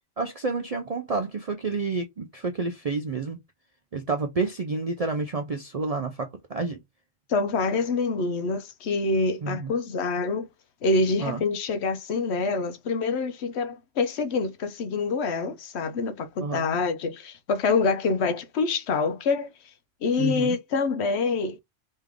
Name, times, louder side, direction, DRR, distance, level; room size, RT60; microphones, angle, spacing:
voice 1, 0.2-3.4 3.9-6.8 9.4-9.7 11.2-11.4 16.4-16.6 20.2-20.6, right 3 dB, 50° right, 0.4 m, -29 dB
voice 2, 7.3-10.5 10.8-19.5 20.0-21.6, left 3 dB, 65° left, 0.9 m, -26 dB
3.4 x 3.2 x 3.5 m
omnidirectional pair, 1.3 m